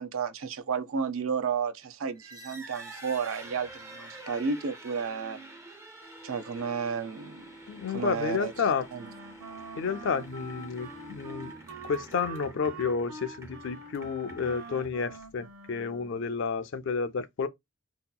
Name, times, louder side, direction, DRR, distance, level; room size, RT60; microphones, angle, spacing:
voice 1, 0.0-5.4 6.2-7.5 7.9-8.5 8.9-9.0, right 6 dB, 70° right, 0.5 m, -32 dB
sound 1, 2.1-15.5, right 2 dB, 15° right, 0.4 m, -49 dB
sound 2, 6.0-12.0, right 1 dB, 80° left, 0.8 m, -52 dB
voice 2, 7.7-8.9 9.7-11.5 11.8-17.5, left 5 dB, 60° left, 0.4 m, -31 dB
Wind instrument woodwind instrument, 8.9-16.3, right 3 dB, 90° right, 0.9 m, -45 dB
3.9 x 2.8 x 2.2 m
head